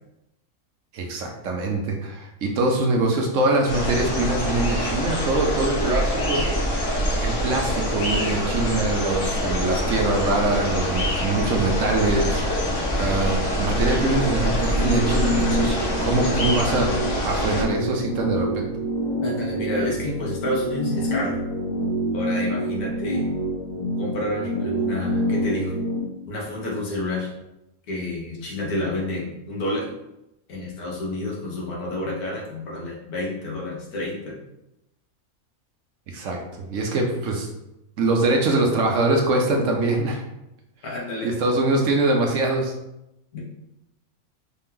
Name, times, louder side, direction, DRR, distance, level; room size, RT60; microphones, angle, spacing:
voice 1, 0.9-6.4 7.2-16.9 17.2-18.7 36.1-37.5 38.0-40.2 41.2-42.7, right 2 dB, 65° right, 1 dB, 1.0 m, -23 dB
sound 1, 3.7-17.6, equal, 60° left, 1.3 m, -25 dB
sound 2, 13.5-26.0, right 1 dB, 40° left, 0.8 m, -27 dB
voice 2, 19.2-21.3 22.1-23.3 24.0-25.7 26.2-27.3 27.9-29.9 30.5-34.3 40.8-41.3 43.3-43.4, left 1 dB, 90° left, -3 dB, 1.7 m, -29 dB
4.2 x 2.9 x 3.7 m, 0.88 s
omnidirectional pair, 1.5 m